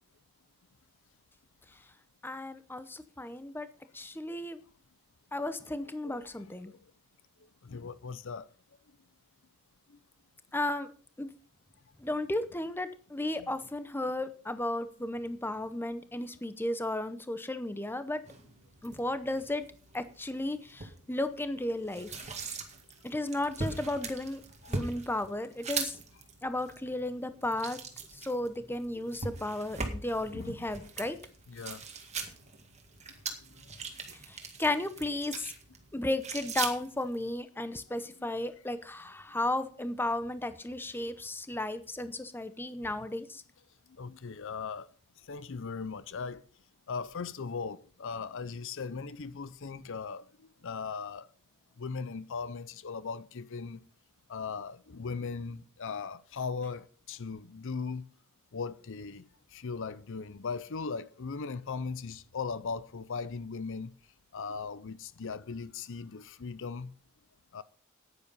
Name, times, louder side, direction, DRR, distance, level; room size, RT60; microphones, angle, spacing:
voice 1, 2.2-3.7 3.9-4.6 5.3-6.7 10.5-10.9 11.2-11.3 12.0-18.2 18.8-19.6 19.9-22.1 23.0-24.4 24.7-26.0 26.4-27.8 28.1-31.2 34.3-35.5 35.9-43.4, left 1 dB, 10° left, 0.7 m, -34 dB
voice 2, 7.6-8.5 16.1-16.3 24.6-24.8 30.3-30.6 31.5-31.8 38.2-38.3 44.0-44.9 45.3-46.4 46.9-50.2 50.6-51.3 51.8-53.8 54.3-58.0 58.5-63.9 64.3-66.9 67.5-67.6, left 5 dB, 60° left, 0.6 m, -38 dB
sound 1, 18.3-37.3, right 4 dB, 30° right, 1.9 m, -41 dB
9.9 x 9.9 x 5.5 m
head